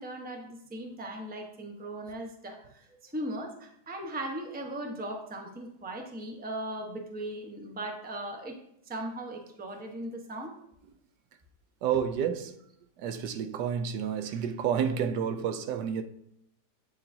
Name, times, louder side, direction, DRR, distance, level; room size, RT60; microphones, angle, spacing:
voice 1, 0.0-8.6 8.8-10.6, right 1 dB, 10° right, 0.6 m, -38 dB
voice 2, 11.8-12.5 13.0-16.0, right 8 dB, 80° right, 1.2 m, -30 dB
8.5 x 7.1 x 2.7 m
omnidirectional pair, 1.8 m